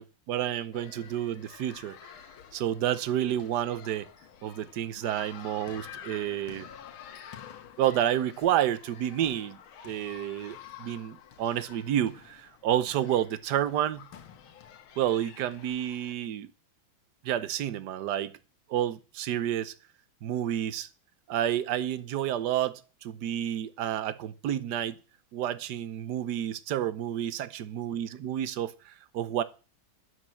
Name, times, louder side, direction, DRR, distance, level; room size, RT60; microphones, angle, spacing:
voice 1, 0.0-2.0 2.5-4.1 4.4-6.7 7.8-9.6 9.8-14.1 15.0-16.5 17.2-18.3 18.7-19.7 20.2-20.9 21.3-25.0 25.3-29.4, right 11 dB, 65° right, 1.3 m, -30 dB
sound 1, 0.7-16.1, left 8 dB, 80° left, 2.0 m, -49 dB
9.6 x 7.8 x 7.7 m
omnidirectional pair, 2.2 m